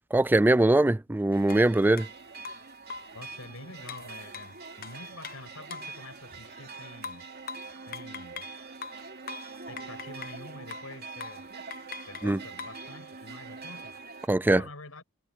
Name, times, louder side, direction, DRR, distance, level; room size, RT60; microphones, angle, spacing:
voice 1, 0.1-2.1 12.2-12.4 14.3-14.6, right 2 dB, 10° right, 0.3 m, -22 dB
sound 1, 1.3-14.3, right 4 dB, 50° right, 3.6 m, -44 dB
sound 2, 1.5-1.6 2.0-2.1 2.4-3.2 3.9-6.0 7.0-8.6 8.8-10.4 10.7-10.9 11.2-11.4 11.7-12.8, left 5 dB, 45° left, 0.8 m, -42 dB
voice 2, 3.1-7.3 7.8-8.4 9.7-11.5 12.0-15.0, left 2 dB, 80° left, 6.4 m, -47 dB
head